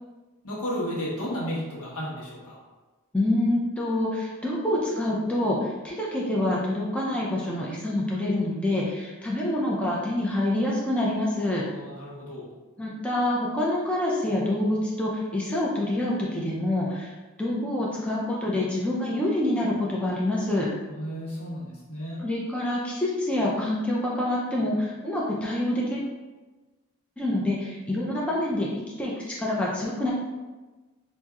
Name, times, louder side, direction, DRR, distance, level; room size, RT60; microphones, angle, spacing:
voice 1, 0.4-2.6 11.6-12.5 20.9-22.2, equal, 85° left, -5 dB, 1.2 m, -33 dB
voice 2, 3.1-11.7 12.8-17.1 17.4-20.7 22.2-26.1 27.2-28.7 29.0-30.1, left 1 dB, 5° left, -5 dB, 0.4 m, -26 dB
4.3 x 2.6 x 2.4 m, 1.2 s
head